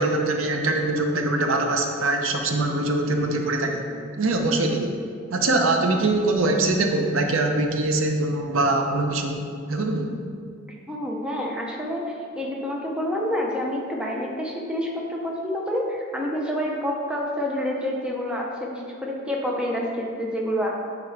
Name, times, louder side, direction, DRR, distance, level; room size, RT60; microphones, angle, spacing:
voice 1, 0.0-3.8 4.2-5.0 5.3-9.4 9.7-10.1, right 2 dB, 80° right, 4 dB, 0.6 m, -23 dB
voice 2, 10.9-20.7, equal, 5° right, -2 dB, 0.6 m, -28 dB
9.3 x 3.8 x 3.3 m, 2.2 s
head